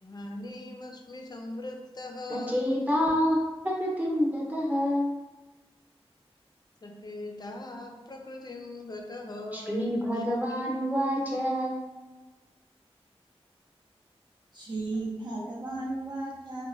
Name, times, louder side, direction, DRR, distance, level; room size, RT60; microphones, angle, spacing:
voice 1, 0.0-2.6 6.8-9.9 10.1-10.6, left 2 dB, 40° left, 2 dB, 0.4 m, -41 dB
voice 2, 2.3-3.4 3.6-5.1 9.5-11.8, equal, 15° right, -4 dB, 0.8 m, -27 dB
voice 3, 14.5-16.7, right 2 dB, 45° right, -5 dB, 0.6 m, -34 dB
2.9 x 2.1 x 2.5 m, 1.2 s
cardioid pair, 50°, 11 cm